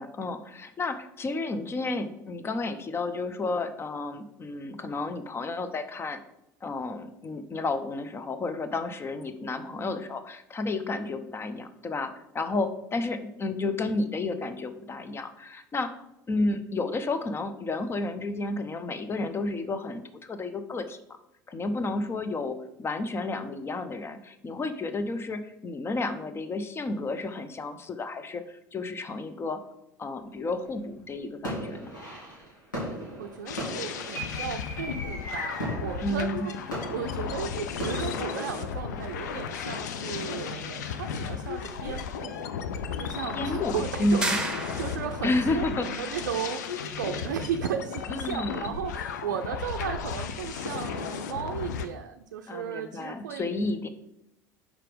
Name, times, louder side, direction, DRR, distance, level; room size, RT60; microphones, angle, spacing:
voice 1, 0.0-6.2 6.6-15.9 16.3-21.0 21.5-29.6 30.0-31.9 36.0-36.5 43.3-44.4 45.2-45.9 48.1-48.7 52.5-53.9, left 2 dB, 25° left, 10 dB, 0.7 m, -31 dB
sound 1, 30.6-31.0 31.4-38.5, right 1 dB, 85° left, 2.9 m, -37 dB
voice 2, 32.9-42.4 43.0-44.4 44.8-53.5, right 8 dB, 65° right, 5 dB, 0.5 m, -35 dB
sound 2, 33.5-51.9, left 7 dB, 65° left, 0.6 m, -35 dB
sound 3, 44.2-45.3, right 2 dB, 10° right, 1.1 m, -31 dB
5.8 x 4.9 x 5.0 m, 0.84 s
figure-of-eight pair, 65°, 10 cm